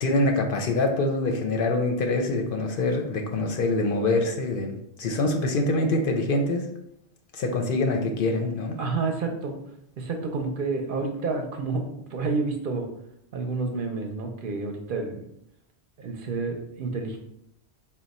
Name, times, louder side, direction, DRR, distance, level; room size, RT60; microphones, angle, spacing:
voice 1, 0.0-6.7 7.3-8.8, left 2 dB, 60° left, 3 dB, 0.7 m, -25 dB
voice 2, 8.8-9.6 10.0-12.9 13.3-15.3 16.0-17.2, right 4 dB, 60° right, 3 dB, 0.7 m, -29 dB
4.3 x 2.2 x 4.0 m, 0.75 s
omnidirectional pair, 1.1 m